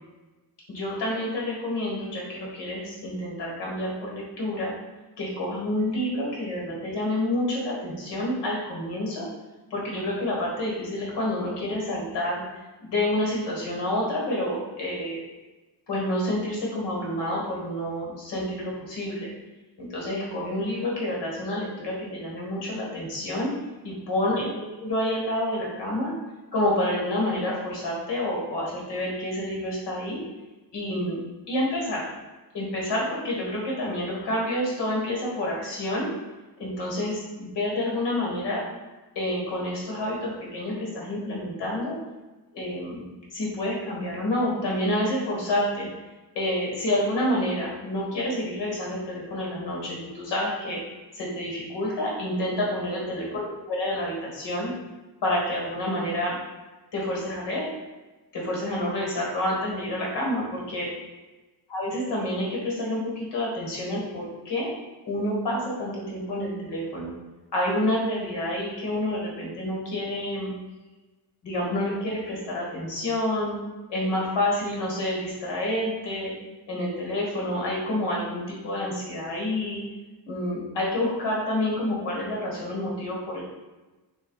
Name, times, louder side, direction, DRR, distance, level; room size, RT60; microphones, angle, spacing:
voice 1, 0.7-4.7 5.2-9.3 9.7-12.4 12.8-15.2 15.9-19.3 19.8-23.5 23.8-26.1 26.5-30.2 30.7-31.2 31.5-32.1 32.5-36.1 36.6-38.6 39.1-42.0 42.5-43.0 43.3-45.9 46.3-50.8 51.1-54.7 55.2-56.4 56.9-57.7 58.3-60.9 61.7-64.7 65.1-67.1 67.5-70.5 71.4-73.6 73.9-76.4 76.7-79.8 80.3-83.4, left 1 dB, 75° left, -3 dB, 1.5 m, -28 dB
6.5 x 2.5 x 2.3 m, 1.2 s
wide cardioid pair, 145°, 42 cm